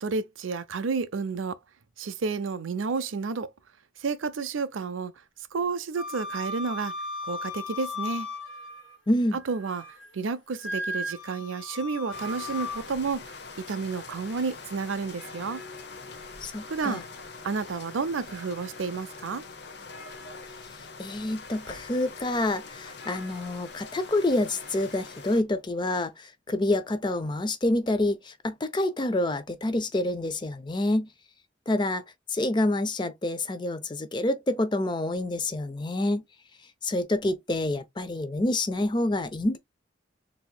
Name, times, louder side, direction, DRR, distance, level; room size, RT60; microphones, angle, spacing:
voice 1, 0.0-1.6 2.0-3.5 4.0-5.1 5.5-6.9 7.2-8.3 9.3-9.9 10.1-13.2 13.6-15.6 16.7-17.0 17.4-19.4, right 4 dB, 90° right, 0.5 m, -31 dB
Wind instrument woodwind instrument, 5.9-9.0 9.4-10.1 10.6-12.8, left 2 dB, 85° left, 1.7 m, -36 dB
voice 2, 9.1-9.4 16.4-17.0 21.0-31.1 31.7-32.0 32.3-36.2 36.8-39.6, left 1 dB, 25° left, 0.4 m, -27 dB
sound 1, 12.1-25.4, left 4 dB, 60° left, 0.8 m, -43 dB
4.0 x 2.8 x 2.2 m
head